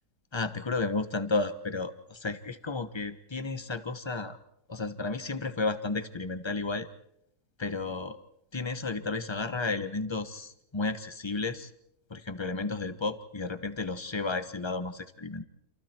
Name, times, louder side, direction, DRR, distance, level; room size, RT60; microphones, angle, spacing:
voice 1, 0.3-4.4 4.7-6.9 7.6-8.2 8.5-11.7 12.1-15.4, left 3 dB, 20° left, 11 dB, 1.1 m, -32 dB
29.0 x 28.0 x 4.5 m, 0.78 s
omnidirectional pair, 1.7 m